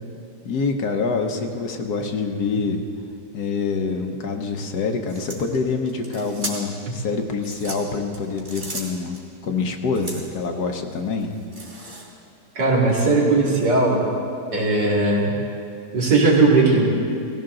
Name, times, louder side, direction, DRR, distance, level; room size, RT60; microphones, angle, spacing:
voice 1, 0.4-2.8 3.3-9.2 9.4-11.3, left 4 dB, 65° left, 4 dB, 1.5 m, -26 dB
sound 1, 5.1-6.8 7.3-9.2 9.9-10.4 10.9-12.3 12.9-13.0, right 1 dB, 40° right, 3.0 m, -36 dB
voice 2, 12.5-14.1 14.5-15.3 15.9-16.8, right 3 dB, 70° right, -4 dB, 3.1 m, -18 dB
17.5 x 16.0 x 3.9 m, 2.5 s
omnidirectional pair, 1.9 m